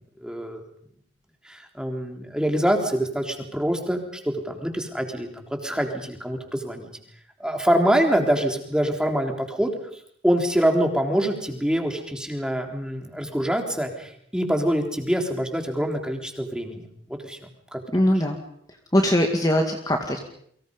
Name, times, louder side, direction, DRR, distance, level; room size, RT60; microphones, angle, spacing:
voice 1, 0.2-0.6 1.5-6.9 7.4-9.7 10.2-17.4 17.7-17.8, equal, 5° right, 3 dB, 3.6 m, -25 dB
voice 2, 17.9-18.4 18.9-20.2, left 1 dB, 20° left, 3 dB, 2.2 m, -21 dB
30.0 x 24.5 x 5.5 m, 0.66 s
head